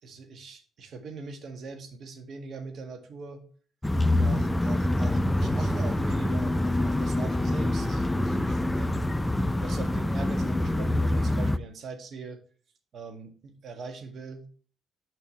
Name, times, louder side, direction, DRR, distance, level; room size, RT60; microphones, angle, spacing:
voice 1, 0.0-3.4 4.1-9.1 9.6-12.4 12.9-14.5, right 4 dB, 60° right, 5 dB, 1.6 m, -42 dB
sound 1, 3.8-11.6, left 1 dB, 10° left, 0.4 m, -26 dB
6.3 x 5.6 x 3.2 m, 0.41 s
cardioid pair, 90°, 0 cm